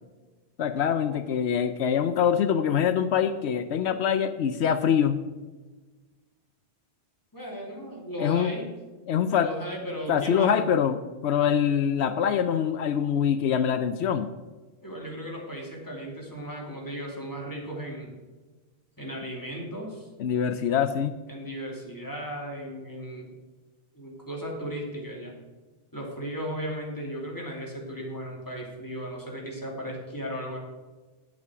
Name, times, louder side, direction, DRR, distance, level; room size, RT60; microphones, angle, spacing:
voice 1, 0.6-5.2 8.2-8.5 9.1-9.5 10.1-11.0 11.2-14.3 20.2-21.1, left 8 dB, 80° left, 10 dB, 0.9 m, -24 dB
voice 2, 7.3-8.7 9.4-10.6 14.8-18.1 19.0-20.1 21.3-23.3 23.9-25.3 25.9-30.6, equal, 20° left, -2 dB, 2.5 m, -36 dB
9.4 x 8.2 x 4.8 m, 1.3 s
omnidirectional pair, 1.1 m